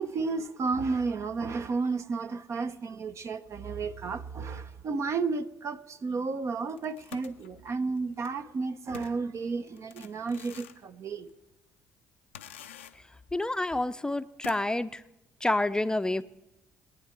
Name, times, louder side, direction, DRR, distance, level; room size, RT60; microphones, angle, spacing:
voice 1, 0.0-11.3, right 4 dB, 50° right, 0.8 m, -32 dB
sound 1, 6.8-8.3 8.9-10.9 11.3-11.4 12.3-13.2 13.6-13.7 14.4-14.8, left 9 dB, 90° left, 0.5 m, -48 dB
voice 2, 13.3-15.0 15.4-16.2, left 2 dB, 10° left, 0.5 m, -28 dB
22.0 x 9.1 x 4.5 m
hypercardioid pair, 45°, 6 cm